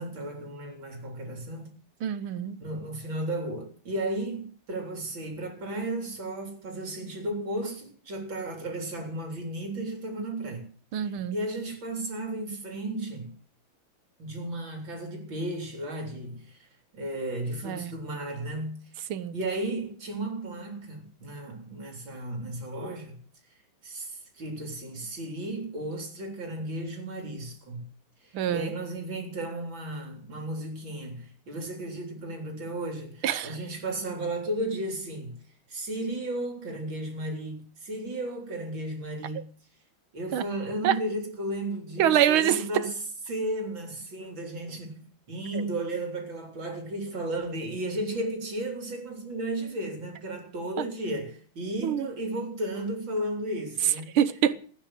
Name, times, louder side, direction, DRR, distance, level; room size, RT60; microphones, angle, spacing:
voice 1, 0.0-1.7 2.6-10.7 11.3-13.3 14.2-16.7 16.9-18.8 19.3-23.2 23.8-27.9 28.2-35.4 35.7-39.4 40.1-42.9 43.3-45.0 45.3-54.2, right 1 dB, 70° right, 4.6 m, -34 dB
voice 2, 2.0-2.6 10.9-11.4 17.6-18.0 19.1-19.3 28.3-28.7 33.2-33.6 39.4-39.5 40.3-40.4 40.8-41.0 42.0-42.9 45.5-45.6 51.8-52.1 53.8-54.5, right 10 dB, 90° right, 1.8 m, -25 dB
15.5 x 9.9 x 7.7 m
omnidirectional pair, 2.2 m